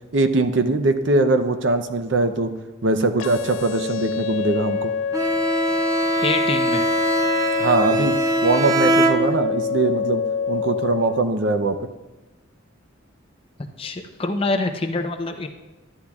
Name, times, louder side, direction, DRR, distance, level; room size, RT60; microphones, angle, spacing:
voice 1, 0.1-2.5 2.8-4.9 7.6-10.2 10.5-11.8, right 2 dB, 65° right, 8 dB, 0.6 m, -21 dB
sound 1, 3.2-11.2, left 6 dB, 85° left, 0.4 m, -27 dB
Bowed string instrument, 5.1-9.7, right 1 dB, 15° right, 0.5 m, -22 dB
voice 2, 6.2-6.9 13.8-15.5, left 3 dB, 30° left, 5 dB, 0.6 m, -25 dB
12.5 x 10.0 x 2.4 m, 1.1 s
head